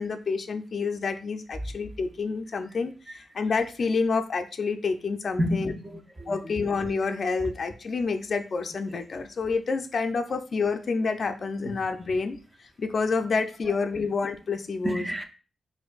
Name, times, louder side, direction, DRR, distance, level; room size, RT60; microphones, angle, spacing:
voice 1, 0.0-5.7 6.3-15.1, left 4 dB, 50° left, 0.3 m, -28 dB
voice 2, 5.4-6.5 14.8-15.2, equal, 20° right, 0.4 m, -30 dB
4.2 x 2.5 x 2.3 m
cardioid pair, 95°, 0 cm